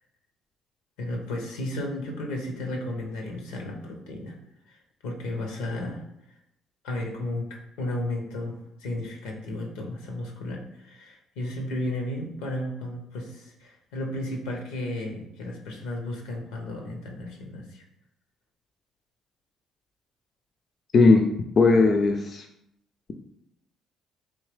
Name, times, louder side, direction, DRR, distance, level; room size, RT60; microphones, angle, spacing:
voice 1, 1.0-4.4 4.7-6.0 6.8-17.8, left 1 dB, 90° left, 2 dB, 0.8 m, -34 dB
voice 2, 20.9-21.3 21.6-22.4, left 3 dB, 50° left, 4 dB, 0.4 m, -18 dB
3.6 x 2.8 x 3.3 m, 0.80 s
supercardioid pair, 65°, 0 cm